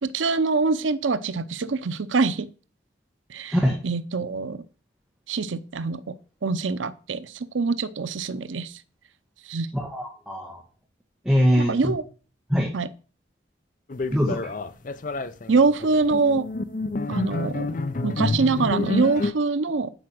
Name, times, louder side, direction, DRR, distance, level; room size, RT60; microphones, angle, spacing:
voice 1, 0.0-2.5 3.3-3.6 3.8-4.6 5.3-6.1 6.4-8.7 9.5-9.7 11.6-12.0 12.7-12.9 15.5-16.5 17.1-17.7 18.0-19.9, right 4 dB, 90° right, 14 dB, 0.6 m, -24 dB
voice 2, 9.7-10.6 11.2-11.9 12.5-12.7 14.1-14.4, equal, 5° right, -1 dB, 1.4 m, -22 dB
sound 1, 13.9-19.3, left 3 dB, 45° left, 0.5 m, -28 dB
10.0 x 4.8 x 7.7 m, 0.39 s
head